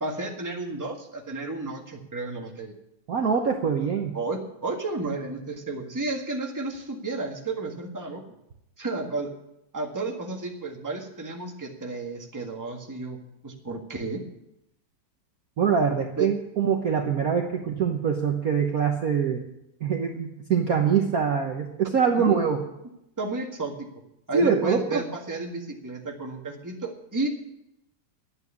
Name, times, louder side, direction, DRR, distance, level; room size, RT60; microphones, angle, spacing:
voice 1, 0.0-2.7 4.1-8.2 8.8-9.3 9.7-14.2 16.2-16.3 22.2-22.5 23.2-23.9 24.3-27.3, right 3 dB, 10° right, 1 dB, 1.5 m, -32 dB
voice 2, 3.1-4.1 15.6-19.4 19.8-22.6 24.3-25.0, right 6 dB, 50° right, 2 dB, 1.3 m, -24 dB
12.0 x 9.0 x 8.4 m, 0.84 s
omnidirectional pair, 2.4 m